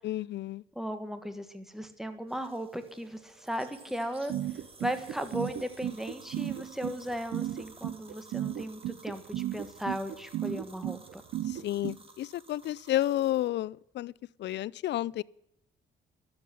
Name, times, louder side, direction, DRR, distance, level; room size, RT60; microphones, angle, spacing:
voice 1, 0.0-0.6 11.4-14.1 14.4-15.2, left 13 dB, 60° left, 0.4 m, -31 dB
voice 2, 0.7-4.3 4.8-11.2, equal, ahead, 1.7 m, -36 dB
sound 1, 2.3-13.5, right 3 dB, 30° right, 2.2 m, -55 dB
sound 2, 4.3-11.9, right 12 dB, 75° right, 0.9 m, -34 dB
12.0 x 7.9 x 9.9 m
cardioid pair, 90°, 20 cm